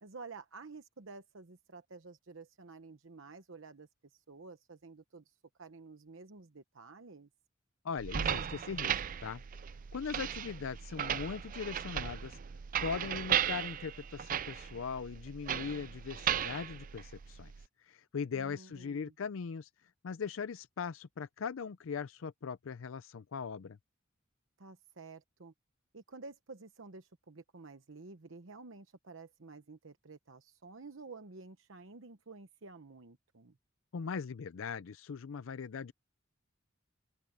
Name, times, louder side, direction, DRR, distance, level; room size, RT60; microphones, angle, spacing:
voice 1, 0.0-7.3 18.3-19.1 24.6-25.5 25.9-33.6, right 3 dB, 70° right, 1.0 m, -51 dB
voice 2, 7.8-9.4 9.9-12.4 12.8-17.5 17.8-23.8 33.9-35.9, left 6 dB, 75° left, 0.5 m, -40 dB
sound 1, 8.0-17.6, right 9 dB, 40° right, 0.4 m, -36 dB
open air
head